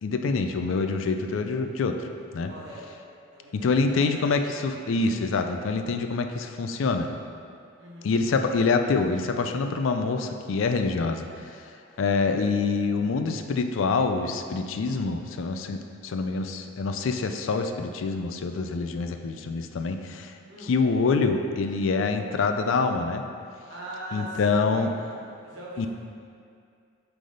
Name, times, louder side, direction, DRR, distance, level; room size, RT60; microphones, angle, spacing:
voice 1, 0.0-2.0 2.3-2.5 3.5-7.1 8.0-11.3 12.0-20.3 20.6-23.2 24.1-24.9 25.8-25.9, left 4 dB, 75° left, 6 dB, 0.4 m, -26 dB
voice 2, 2.5-2.9 3.3-4.1 5.0-5.1 7.8-8.1 20.5-20.7 23.7-25.9, equal, 65° right, -5 dB, 1.3 m, -41 dB
7.5 x 3.4 x 3.9 m, 2.3 s
head